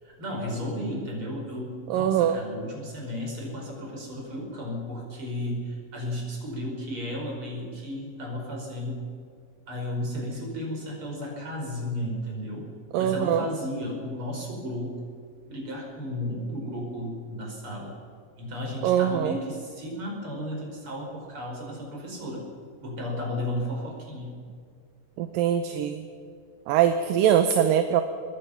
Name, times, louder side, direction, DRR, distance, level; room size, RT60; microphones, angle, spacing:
voice 1, 0.0-9.0 9.7-12.7 13.0-15.0 15.5-17.9 18.4-22.5 22.8-24.4, left 1 dB, 35° right, -1 dB, 6.0 m, -34 dB
voice 2, 1.9-2.4 12.9-13.5 18.8-19.4 25.2-26.1 26.7-28.0, right 9 dB, 75° right, 8 dB, 2.5 m, -22 dB
25.0 x 21.0 x 5.9 m, 2.1 s
omnidirectional pair, 4.2 m